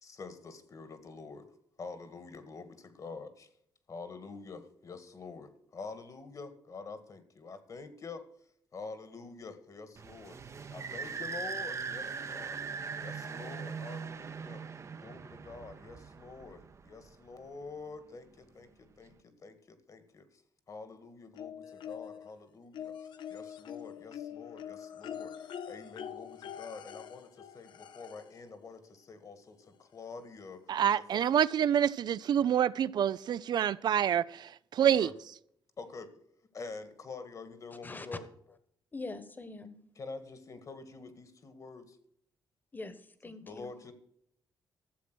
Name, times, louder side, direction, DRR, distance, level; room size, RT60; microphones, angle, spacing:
voice 1, 0.0-1.5 1.8-3.5 3.9-8.2 8.7-10.4 10.7-12.6 12.9-14.6 15.0-20.4 20.7-30.6 31.0-31.2 34.8-35.1 35.8-36.2 36.5-38.3 40.0-42.0 43.4-43.9, left 4 dB, 45° left, 1.7 m, -47 dB
sound 1, 10.0-17.3, right 5 dB, 40° right, 0.7 m, -41 dB
sound 2, 21.4-22.3 22.7-28.4 29.6-29.7 30.1-30.2, left 9 dB, 75° left, 0.8 m, -44 dB
voice 2, 30.7-35.1, right 9 dB, 60° right, 0.4 m, -27 dB
voice 3, 38.9-39.8 42.7-43.7, left 3 dB, 25° left, 1.3 m, -43 dB
13.0 x 7.4 x 6.1 m
cardioid pair, 105°, 8 cm